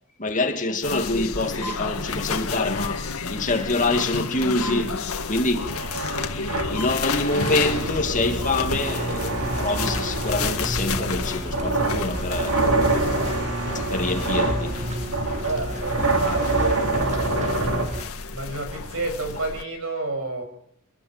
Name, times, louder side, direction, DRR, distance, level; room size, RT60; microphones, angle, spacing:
voice 1, 0.2-4.9 5.3-5.8 6.7-12.6 13.0-13.1 13.7-14.8, left 2 dB, 35° left, 2.5 m, -26 dB
sound 1, 0.8-19.6, left 4 dB, 90° left, 1.9 m, -31 dB
sound 2, 5.6-17.9, right 2 dB, 90° right, 4.1 m, -26 dB
sound 3, 8.7-18.1, equal, 30° right, 2.1 m, -32 dB
voice 2, 15.4-17.2 18.3-20.4, right 2 dB, 70° right, 7.0 m, -30 dB
29.0 x 13.0 x 7.6 m
head